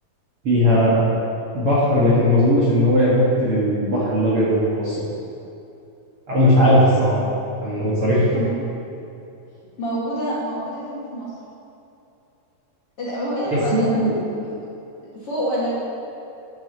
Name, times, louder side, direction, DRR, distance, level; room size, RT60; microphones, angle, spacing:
voice 1, 0.4-1.0 1.5-5.0 6.3-7.2 7.6-8.3 13.5-14.2, equal, 50° right, -9 dB, 2.0 m, -18 dB
voice 2, 9.8-11.3 13.0-13.8 14.4-14.5 15.1-15.7, equal, 45° left, -8 dB, 2.5 m, -26 dB
9.2 x 6.2 x 6.7 m, 2.7 s
omnidirectional pair, 4.1 m